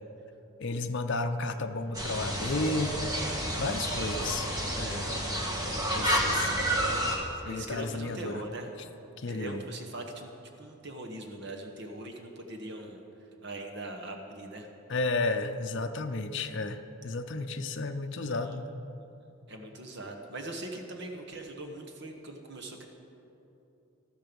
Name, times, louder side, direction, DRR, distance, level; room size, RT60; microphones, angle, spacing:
voice 1, 0.6-3.0 3.6-4.5 4.8-5.1 5.9-6.6 7.4-8.4 9.2-9.6 14.9-18.7, left 3 dB, 55° left, 6 dB, 0.6 m, -32 dB
sound 1, 1.9-7.2, right 1 dB, 15° right, 1.4 m, -30 dB
voice 2, 5.8-6.2 7.4-8.7 9.3-10.3 10.6-13.0 13.4-14.7 18.1-18.5 19.5-22.9, right 1 dB, 50° right, 3 dB, 1.2 m, -41 dB
13.0 x 13.0 x 5.3 m, 2.9 s
head